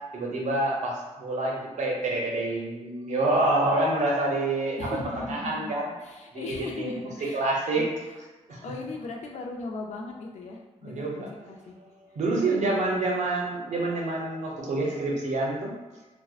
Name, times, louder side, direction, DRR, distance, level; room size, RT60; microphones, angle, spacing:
voice 1, 0.1-5.0 5.3-5.9 6.3-6.9 7.3-7.9 8.5-8.6 10.8-11.3 12.1-15.7, right 2 dB, 85° right, -2 dB, 0.6 m, -27 dB
voice 2, 4.8-5.7 6.0-7.5 7.8-7.9 8.5-11.7 12.3-13.2, left 3 dB, 75° left, 0 dB, 0.4 m, -38 dB
2.6 x 2.1 x 2.3 m, 1.2 s
wide cardioid pair, 180°, 12 cm